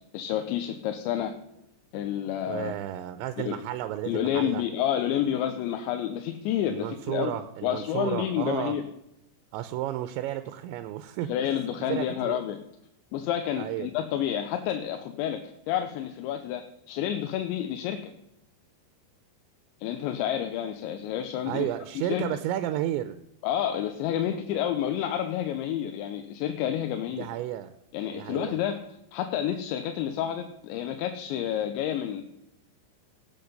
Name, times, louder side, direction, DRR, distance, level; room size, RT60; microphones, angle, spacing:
voice 1, 0.1-1.3 1.9-2.7 3.4-3.6 4.1-8.8 11.3-12.6 13.1-18.1 19.8-21.7 22.0-22.3 23.4-27.3 27.9-28.8 29.1-32.2, left 10 dB, 85° left, 7 dB, 3.1 m, -29 dB
voice 2, 2.5-4.6 6.7-8.8 9.5-11.3 11.9-12.4 13.6-13.9 21.5-23.2 27.2-27.7 28.1-28.6, right 13 dB, 85° right, 11 dB, 2.9 m, -32 dB
17.5 x 7.7 x 5.4 m, 0.83 s
omnidirectional pair, 5.2 m